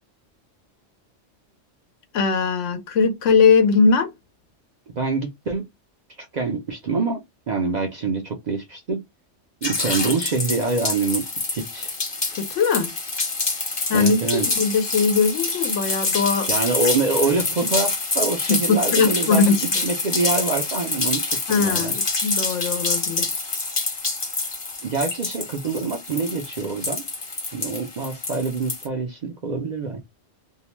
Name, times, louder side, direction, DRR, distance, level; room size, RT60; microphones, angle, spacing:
voice 1, 2.1-4.1 12.4-12.9 13.9-14.2 14.6-16.5 18.7-19.6 21.5-23.3, left 5 dB, 85° left, 1.0 m, -20 dB
voice 2, 5.0-5.6 6.2-7.2 7.5-9.0 9.6-11.9 13.9-14.5 16.5-19.6 19.8-21.9 24.8-27.0 27.5-30.0, right 4 dB, 55° right, 0.5 m, -25 dB
sound 1, 9.6-28.9, left 3 dB, 35° left, 0.4 m, -27 dB
2.7 x 2.1 x 3.0 m
omnidirectional pair, 1.2 m